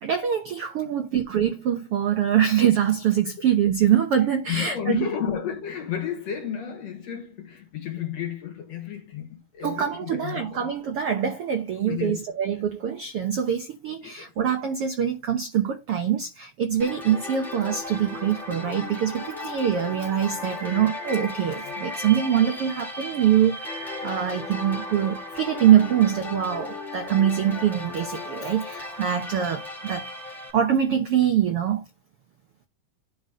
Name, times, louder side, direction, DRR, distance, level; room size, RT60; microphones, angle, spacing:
voice 1, 0.0-5.0 9.6-30.1 30.5-31.8, right 9 dB, 80° right, 1.3 m, -24 dB
voice 2, 4.5-10.7 11.8-12.2 14.0-14.3 21.6-21.7, left 8 dB, 55° left, 2.2 m, -32 dB
sound 1, 16.8-30.5, left 2 dB, ahead, 1.1 m, -36 dB
11.0 x 4.1 x 5.1 m
omnidirectional pair, 4.1 m